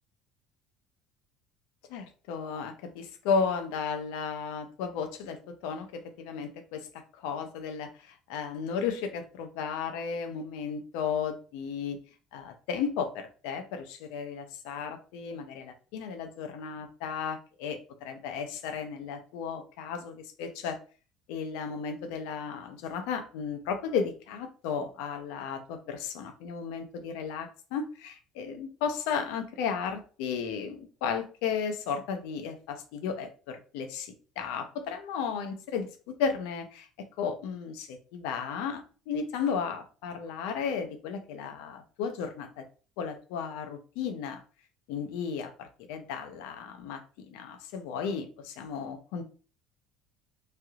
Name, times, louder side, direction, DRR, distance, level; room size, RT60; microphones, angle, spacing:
voice 1, 1.9-12.0 12.3-20.8 21.3-36.9 37.2-42.6 43.0-44.4 44.9-49.2, left 6 dB, 85° left, 7 dB, 0.6 m, -34 dB
3.2 x 2.4 x 2.8 m, 0.36 s
cardioid pair, 145°, 0 cm